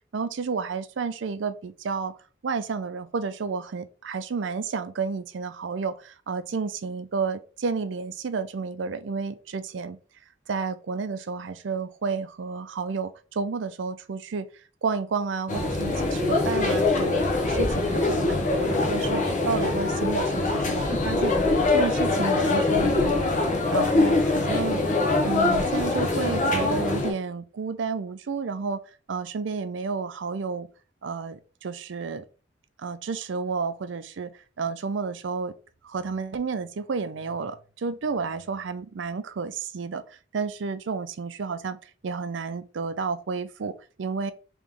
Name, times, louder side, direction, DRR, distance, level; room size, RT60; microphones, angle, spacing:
voice 1, 0.1-2.1 2.4-10.0 10.5-14.5 14.8-17.2 17.5-21.3 21.7-23.4 23.7-24.8 25.2-28.8 29.1-30.7 31.0-32.2 32.8-34.3 34.6-35.5 35.8-41.8 42.0-44.3, right 5 dB, 80° right, 0.5 m, -31 dB
sound 1, 15.5-27.1, left 2 dB, 45° left, 0.8 m, -23 dB
3.4 x 3.0 x 3.6 m
head